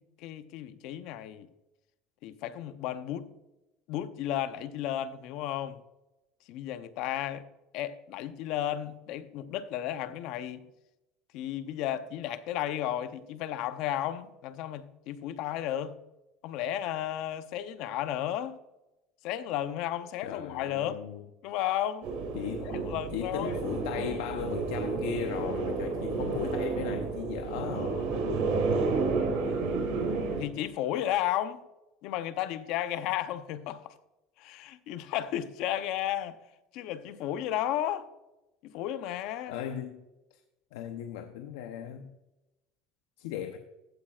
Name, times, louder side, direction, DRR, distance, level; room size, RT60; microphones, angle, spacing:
voice 1, 0.0-1.5 2.2-3.3 3.9-5.8 6.5-7.4 7.7-10.7 11.3-16.0 16.4-18.6 19.2-21.0 21.4-22.1 22.6-23.6 29.4-29.6 30.4-31.6 32.0-34.0 34.4-36.4 36.7-38.1 38.6-39.6, left 12 dB, 50° left, 0.6 m, -33 dB
voice 2, 20.2-21.3 22.3-22.7 23.1-28.4 39.5-40.0 40.7-42.1 43.2-43.6, left 9 dB, 80° left, 0.7 m, -37 dB
sound 1, 22.0-30.4, right 4 dB, 65° right, 2.6 m, -31 dB
15.0 x 8.5 x 2.4 m
cardioid pair, 175°, 0 cm